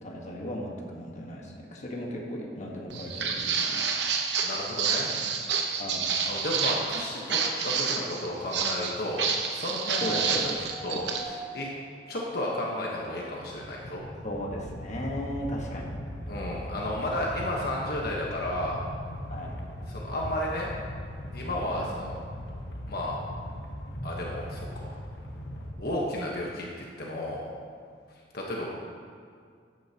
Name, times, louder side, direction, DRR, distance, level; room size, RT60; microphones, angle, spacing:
voice 1, 0.0-3.8 5.8-6.1 10.0-10.6 14.2-15.9 19.3-19.6 21.7-21.9, equal, 45° left, -2 dB, 1.4 m, -36 dB
Walk footsteps, 2.9-11.2, right 6 dB, 75° right, 1.0 m, -29 dB
voice 2, 4.4-5.1 6.3-10.2 10.8-11.7 12.1-14.0 16.3-18.8 19.9-20.7 21.3-22.2 22.9-23.2 24.0-25.0 25.8-27.5 28.3-28.7, left 1 dB, 60° left, -3 dB, 1.3 m, -33 dB
sound 1, 9.9-13.1 14.5-14.6, right 1 dB, 10° left, 1.3 m, -42 dB
sound 2, 13.5-25.7, equal, 90° left, 1.2 m, -39 dB
13.0 x 9.5 x 2.9 m, 2.2 s
head